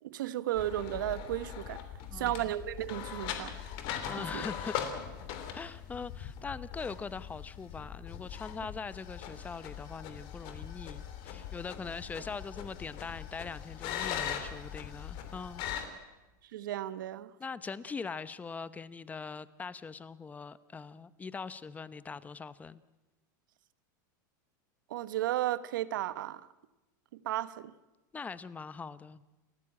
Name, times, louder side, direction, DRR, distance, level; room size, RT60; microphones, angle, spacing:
voice 1, 0.0-1.8 2.1-3.5 4.3-4.4 16.5-17.3 24.9-26.4 27.1-27.7, right 13 dB, 85° right, 16 dB, 1.1 m, -34 dB
sound 1, 0.5-15.9, left 9 dB, 55° left, 3.1 m, -40 dB
voice 2, 2.1-2.5 4.0-4.7 5.5-15.6 17.4-22.8 28.1-29.2, left 5 dB, 15° left, 16 dB, 0.8 m, -42 dB
29.5 x 13.5 x 8.7 m, 1.1 s
supercardioid pair, 130°, 10 cm